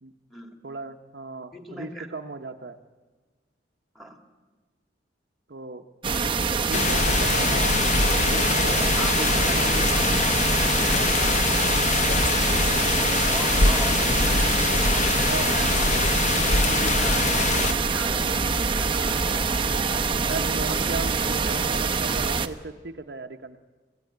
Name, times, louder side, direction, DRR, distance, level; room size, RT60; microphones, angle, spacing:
voice 1, 0.6-2.8 5.5-5.8 6.6-7.8 8.1-9.1 9.5-10.3 13.6-13.8 15.3-15.5 20.3-23.6, right 3 dB, 60° right, 6 dB, 0.9 m, -36 dB
voice 2, 1.5-2.1 3.9-4.2 8.9-10.5 11.1-11.5 13.3-14.6 14.9-19.4, right 1 dB, ahead, 5 dB, 2.2 m, -39 dB
sound 1, 6.0-22.5, right 4 dB, 25° right, 0.8 m, -25 dB
sound 2, 6.7-17.7, left 4 dB, 40° left, 0.7 m, -24 dB
sound 3, 17.3-22.3, equal, 85° left, 7.1 m, -45 dB
25.0 x 15.5 x 9.4 m, 1.4 s
head